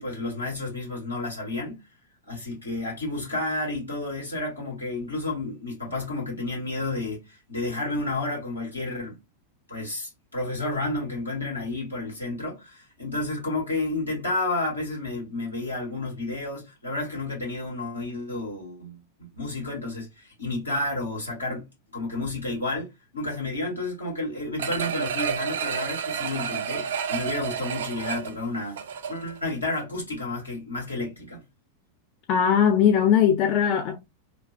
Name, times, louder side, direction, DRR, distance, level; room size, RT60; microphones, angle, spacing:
voice 1, 0.0-1.8 2.3-9.2 9.7-21.7 21.9-28.8 29.1-31.4, left 2 dB, 80° left, 1.9 m, -31 dB
sound 1, 24.6-29.4 29.8-29.9, right 7 dB, 60° right, 0.4 m, -30 dB
voice 2, 32.3-34.0, left 8 dB, 40° left, 0.4 m, -20 dB
3.1 x 2.1 x 2.6 m
figure-of-eight pair, 90°, 0 cm